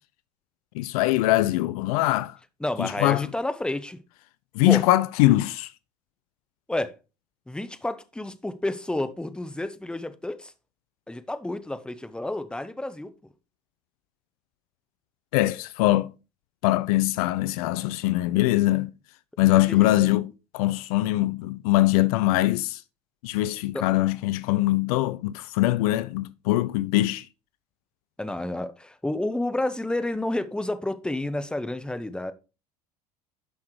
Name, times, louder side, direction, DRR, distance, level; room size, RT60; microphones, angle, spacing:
voice 1, 0.7-2.4 2.8-3.3 4.5-5.7 15.3-16.1 16.6-18.9 19.4-22.8 23.2-27.3, left 17 dB, 65° left, 0.5 m, -22 dB
voice 2, 2.6-4.0 4.6-4.8 6.7-7.0 7.5-10.5 11.1-13.1 19.7-19.9 23.7-23.9 28.2-32.3, left 1 dB, 5° left, 0.8 m, -30 dB
11.0 x 5.9 x 3.1 m
figure-of-eight pair, 70°, 21 cm